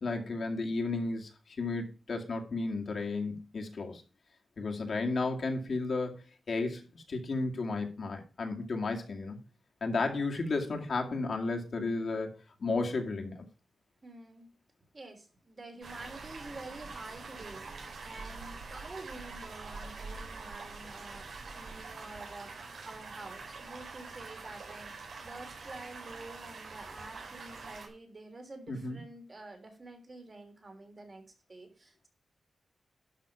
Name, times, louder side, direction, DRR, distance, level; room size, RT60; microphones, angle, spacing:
voice 1, 0.0-4.0 4.6-6.2 6.5-9.4 9.8-13.4 28.7-29.0, left 3 dB, 55° left, 2 dB, 2.2 m, -33 dB
voice 2, 14.0-14.5 14.9-21.3 21.6-31.2 31.5-32.1, right 2 dB, 35° right, 4 dB, 3.4 m, -48 dB
sound 1, 15.8-27.9, right 4 dB, 70° right, 3.8 m, -45 dB
12.0 x 5.9 x 5.7 m, 0.34 s
wide cardioid pair, 120°, 0 cm